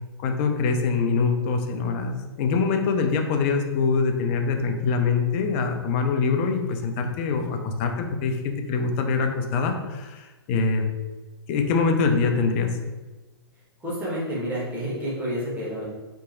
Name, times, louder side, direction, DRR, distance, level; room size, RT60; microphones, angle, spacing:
voice 1, 0.2-10.8 11.5-12.7, left 4 dB, 30° left, 4 dB, 0.3 m, -24 dB
voice 2, 13.8-15.9, equal, 10° right, -8 dB, 1.1 m, -29 dB
2.8 x 2.6 x 2.5 m, 1.2 s
figure-of-eight pair, 110°, 14 cm